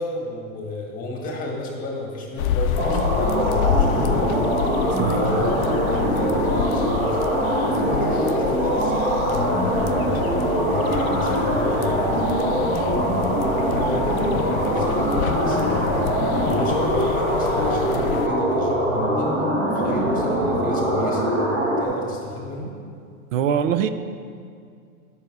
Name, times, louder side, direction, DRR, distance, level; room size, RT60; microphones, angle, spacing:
voice 1, 0.0-4.3 5.2-10.2 10.7-19.3 19.6-21.3 21.8-22.7, left 2 dB, 20° left, -1 dB, 1.8 m, -32 dB
sound 1, 2.4-18.3, left 9 dB, 75° left, 0.5 m, -28 dB
sound 2, 2.8-21.8, right 1 dB, 20° right, 1.5 m, -22 dB
voice 2, 4.9-5.3 23.3-23.9, right 8 dB, 65° right, 11 dB, 0.6 m, -22 dB
9.0 x 5.7 x 4.7 m, 2.3 s
hypercardioid pair, 135°, 42 cm